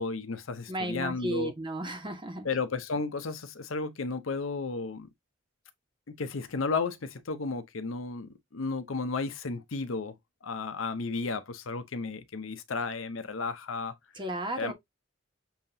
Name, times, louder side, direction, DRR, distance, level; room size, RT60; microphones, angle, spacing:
voice 1, 0.0-1.5 2.4-5.1 6.1-10.2 10.4-13.9 14.6-14.7, left 4 dB, 85° left, 0.7 m, -33 dB
voice 2, 0.7-2.5 14.2-14.7, right 1 dB, 25° right, 1.3 m, -34 dB
7.0 x 2.9 x 2.7 m
head